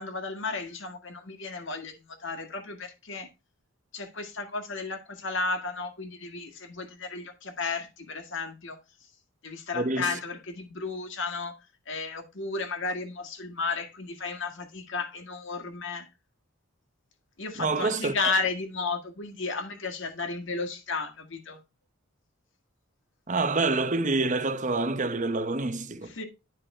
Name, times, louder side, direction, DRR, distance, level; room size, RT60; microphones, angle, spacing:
voice 1, 0.0-3.3 3.9-8.8 9.4-11.6 11.9-16.1 17.4-21.6 26.0-26.2, left 4 dB, 60° left, 1.9 m, -33 dB
voice 2, 17.6-18.3 23.3-26.1, right 3 dB, 35° right, 0.8 m, -27 dB
10.5 x 5.4 x 4.3 m
head